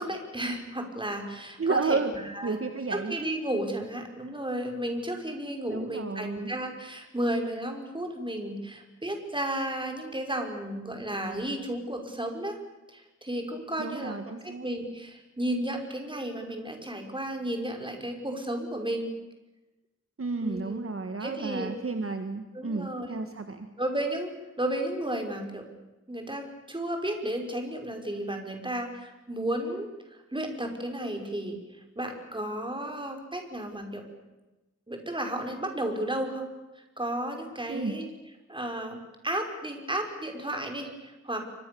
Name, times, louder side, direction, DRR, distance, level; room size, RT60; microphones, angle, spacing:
voice 1, 0.0-2.6 2.9-12.6 12.9-14.2 14.4-19.1 20.4-20.9 21.2-21.7 22.5-23.2 23.8-24.3 24.6-25.7 26.1-31.6 32.0-34.0 34.9-36.5 36.8-38.1 38.5-41.5, right 1 dB, 15° right, 3 dB, 5.8 m, -33 dB
voice 2, 1.6-2.1 2.4-3.2 5.7-6.5 13.8-14.7 20.2-23.7 37.7-37.9, right 4 dB, 45° right, 7 dB, 1.8 m, -31 dB
30.0 x 24.5 x 7.1 m, 1.1 s
wide cardioid pair, 100°, 30 cm